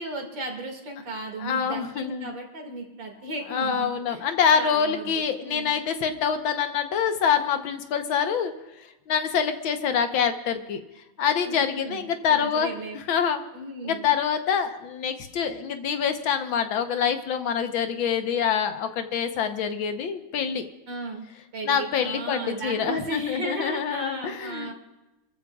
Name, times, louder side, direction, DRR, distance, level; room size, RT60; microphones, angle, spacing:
voice 1, 0.0-5.7 11.4-13.0 13.5-14.1 20.9-21.2 21.5-24.7, right 2 dB, 65° right, 1 dB, 2.9 m, -35 dB
voice 2, 1.4-2.3 3.5-8.5 9.1-10.8 11.2-13.4 13.8-20.6 21.6-24.7, left 7 dB, 80° left, 7 dB, 1.8 m, -26 dB
28.0 x 14.5 x 2.4 m, 1.0 s
omnidirectional pair, 2.2 m